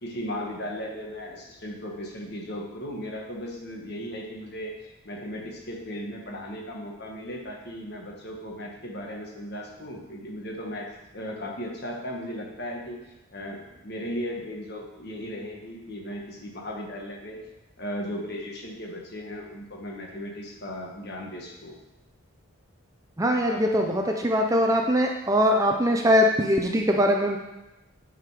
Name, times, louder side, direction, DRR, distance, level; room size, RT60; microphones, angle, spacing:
voice 1, 0.0-4.7 5.0-13.0 13.3-17.4 17.8-21.8 23.5-24.0, equal, 50° left, 0 dB, 1.4 m, -36 dB
voice 2, 23.2-27.4, equal, 15° right, 2 dB, 0.5 m, -22 dB
8.7 x 5.2 x 4.9 m, 0.99 s
head